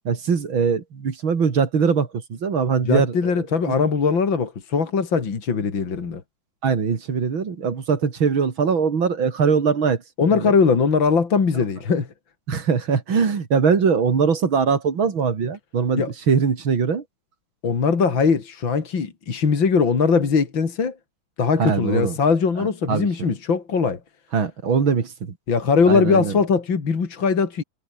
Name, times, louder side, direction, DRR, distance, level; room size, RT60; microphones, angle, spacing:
voice 1, 0.0-3.8 6.6-10.0 10.3-10.5 11.5-11.6 12.5-17.0 21.6-22.2 22.6-23.3 24.3-25.4 25.9-26.4, right 6 dB, 70° right, 3.3 m, -22 dB
voice 2, 2.9-6.2 10.2-12.1 16.0-16.1 17.6-21.0 21.4-24.0 25.5-27.6, left 5 dB, 65° left, 3.5 m, -20 dB
omnidirectional pair, 2.3 m